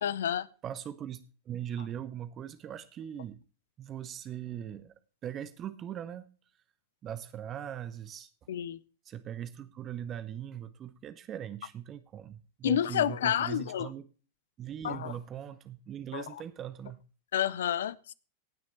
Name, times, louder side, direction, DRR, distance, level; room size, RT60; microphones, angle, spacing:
voice 1, 0.0-0.5 8.5-8.8 12.6-13.9 14.8-15.1 16.1-16.2 17.3-18.1, left 10 dB, 60° left, 0.6 m, -29 dB
voice 2, 0.6-1.2 1.5-3.4 3.8-4.9 5.2-6.3 7.0-8.3 9.0-14.1 14.6-17.0, right 10 dB, 30° right, 0.9 m, -40 dB
18.0 x 6.4 x 4.2 m
figure-of-eight pair, 90°, 0 cm